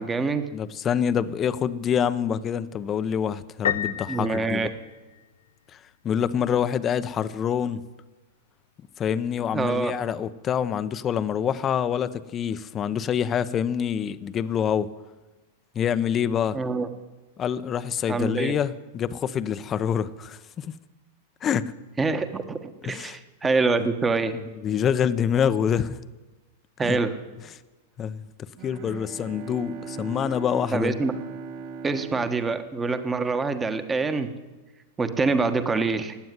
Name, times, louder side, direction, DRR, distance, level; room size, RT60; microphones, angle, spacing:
voice 1, 0.0-0.5 4.1-4.7 9.5-9.9 16.5-16.9 18.1-18.6 22.0-24.4 26.8-27.2 30.7-31.1 31.8-34.3 35.0-36.2, right 4 dB, 15° right, 1.3 m, -25 dB
voice 2, 0.5-4.7 6.0-7.8 9.0-14.9 15.7-16.6 17.4-20.7 21.4-21.7 22.8-23.2 24.6-26.0 26.8-27.0 28.0-28.2 28.6-31.0, left 8 dB, 30° left, 0.7 m, -26 dB
Piano, 3.6-5.5, left 9 dB, 85° left, 0.7 m, -30 dB
Bowed string instrument, 28.6-33.5, right 5 dB, 55° right, 1.5 m, -39 dB
16.0 x 9.3 x 9.5 m
hypercardioid pair, 120°, 0 cm